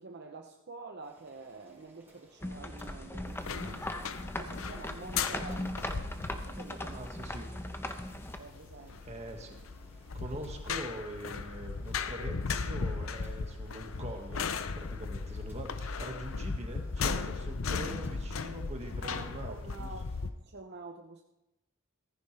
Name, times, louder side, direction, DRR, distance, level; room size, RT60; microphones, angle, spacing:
voice 1, 0.0-7.1 8.4-9.1 19.0-21.2, right 3 dB, 55° right, 2 dB, 0.8 m, -48 dB
Boiling, 1.0-20.3, right 1 dB, 10° right, 4.3 m, -62 dB
sound 1, 2.4-8.4, left 1 dB, 10° left, 0.9 m, -39 dB
sound 2, 3.3-20.3, left 5 dB, 70° left, 0.7 m, -37 dB
voice 2, 6.9-7.5 9.0-9.6 10.1-19.9, right 1 dB, 35° right, 2 dB, 1.9 m, -43 dB
15.0 x 15.0 x 3.4 m, 0.93 s
head